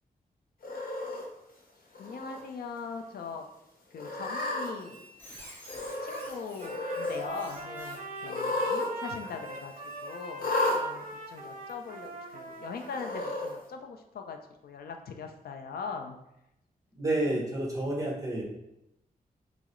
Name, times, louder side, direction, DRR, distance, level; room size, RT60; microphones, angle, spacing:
Cat, 0.6-1.2 1.9-2.4 2.8-2.9 4.0-4.7 5.7-6.3 6.6-7.2 8.2-8.9 9.2-9.3 10.4-10.8 11.7-11.8 12.9-13.5, left 2 dB, 75° left, 0.9 m, -32 dB
voice 1, 2.0-3.4 3.9-5.0 6.0-9.7 10.0-10.5 10.8-16.2, left 5 dB, 90° left, 4 dB, 0.5 m, -41 dB
Squeak, 4.6-10.6, equal, 10° left, 0.9 m, -52 dB
Trumpet, 6.6-13.5, right 3 dB, 55° right, 0.7 m, -41 dB
voice 2, 17.0-18.4, right 1 dB, 20° right, -2 dB, 1.0 m, -29 dB
5.7 x 2.0 x 3.1 m, 0.85 s
wide cardioid pair, 125°, 15 cm